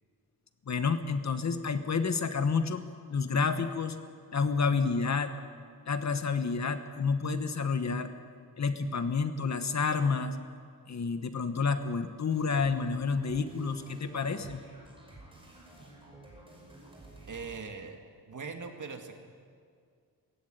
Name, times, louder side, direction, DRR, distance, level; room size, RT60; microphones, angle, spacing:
voice 1, 0.7-2.8 3.1-4.0 4.3-5.3 5.9-8.1 8.6-10.4 10.9-14.6, left 5 dB, 45° left, 9 dB, 1.3 m, -29 dB
sound 1, 12.3-17.6, right 2 dB, 15° right, 6.0 m, -52 dB
voice 2, 17.3-18.0 18.3-19.1, right 5 dB, 50° right, 5 dB, 2.3 m, -40 dB
19.0 x 15.5 x 9.5 m, 2.2 s
wide cardioid pair, 125°, 37 cm